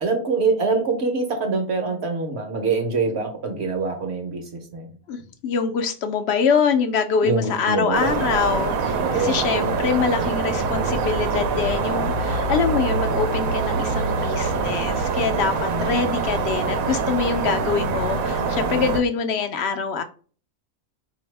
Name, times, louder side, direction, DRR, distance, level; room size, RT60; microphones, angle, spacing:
voice 1, 0.0-4.9 7.2-8.2 8.8-9.8 15.7-16.3, right 4 dB, 55° right, 4 dB, 1.1 m, -25 dB
voice 2, 5.1-20.0, left 5 dB, 65° left, 8 dB, 0.7 m, -24 dB
sound 1, 7.9-19.0, right 4 dB, 85° right, 1.1 m, -24 dB
4.3 x 2.7 x 3.2 m, 0.39 s
omnidirectional pair, 1.4 m